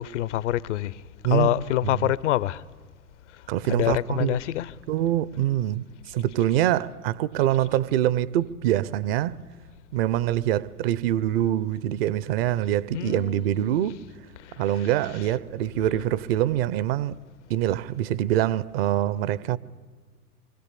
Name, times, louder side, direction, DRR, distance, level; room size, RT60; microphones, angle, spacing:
voice 1, 0.0-2.6 3.3-3.4 3.7-4.8 12.9-13.7 14.4-14.9, left 13 dB, 55° left, 0.8 m, -27 dB
voice 2, 1.2-2.1 3.5-4.4 4.9-9.4 9.9-14.0 14.6-17.2 17.5-19.6, right 12 dB, 40° right, 0.8 m, -25 dB
26.0 x 24.5 x 8.5 m
figure-of-eight pair, 95°, 44 cm